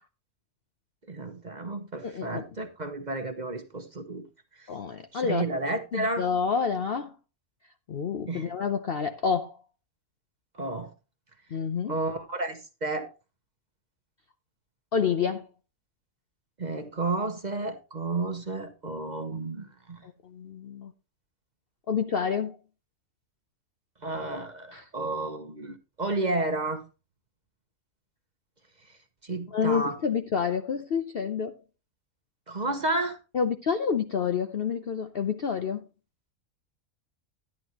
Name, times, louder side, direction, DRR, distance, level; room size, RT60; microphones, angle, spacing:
voice 1, 1.1-4.2 4.6-4.7 5.1-6.3 8.3-8.5 10.5-10.9 11.9-13.1 16.6-20.0 24.0-26.8 29.2-30.0 32.5-33.2, right 2 dB, 35° right, 1.0 m, -31 dB
voice 2, 2.0-2.4 4.7-5.5 5.9-7.1 7.9-9.6 11.5-12.0 14.9-15.5 20.0-20.9 21.9-22.6 24.7-24.8 29.5-31.5 33.3-35.8, left 6 dB, 55° left, 0.7 m, -28 dB
11.0 x 10.5 x 2.9 m
omnidirectional pair, 1.6 m